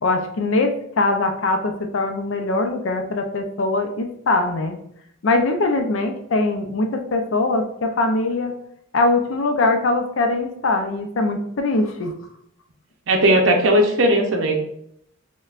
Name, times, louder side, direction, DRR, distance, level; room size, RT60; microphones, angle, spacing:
voice 1, 0.0-4.8 5.2-8.5 8.9-12.1, left 2 dB, 70° left, 5 dB, 0.5 m, -22 dB
voice 2, 13.1-14.6, right 1 dB, 75° right, 2 dB, 0.6 m, -17 dB
6.4 x 2.2 x 2.4 m, 0.72 s
head